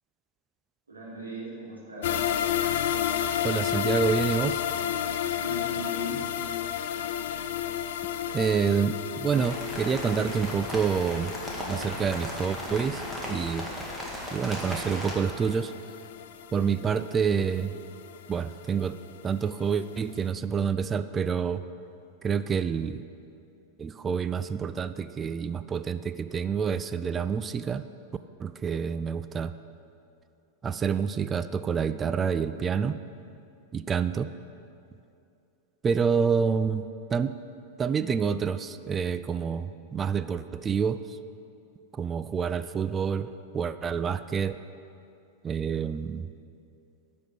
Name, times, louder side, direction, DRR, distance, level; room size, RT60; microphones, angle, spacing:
voice 1, 0.9-2.2 5.4-6.2, equal, 75° right, -6 dB, 3.1 m, -38 dB
sound 1, 2.0-19.1 19.4-19.5 19.9-20.0, left 10 dB, 55° left, 0.4 m, -32 dB
voice 2, 3.4-4.6 8.3-11.3 11.7-13.0 13.3-13.7 14.3-15.7 16.5-17.7 18.3-19.0 19.2-21.6 22.2-23.0 23.8-27.8 28.4-29.5 30.6-33.0 33.7-34.3 35.8-37.3 37.8-41.0 41.9-44.6 45.4-46.3, right 6 dB, 20° right, 12 dB, 0.3 m, -28 dB
sound 2, 9.3-15.1, equal, 5° right, 1.9 m, -37 dB
11.5 x 5.2 x 8.1 m, 2.6 s
figure-of-eight pair, 90°, 0 cm